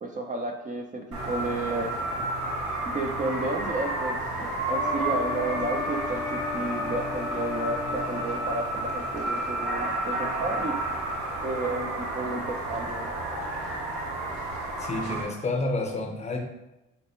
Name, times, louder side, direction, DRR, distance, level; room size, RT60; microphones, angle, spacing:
voice 1, 0.0-2.0 2.8-10.8 11.4-13.1, right 2 dB, 25° right, 2 dB, 0.4 m, -32 dB
sound 1, 1.1-15.2, right 2 dB, 65° right, 1.1 m, -31 dB
sound 2, 4.6-8.6, left 6 dB, 85° left, 0.5 m, -35 dB
voice 2, 14.8-16.4, left 2 dB, 20° left, 2 dB, 0.6 m, -29 dB
4.2 x 2.0 x 4.2 m, 0.97 s
cardioid pair, 90°, 30 cm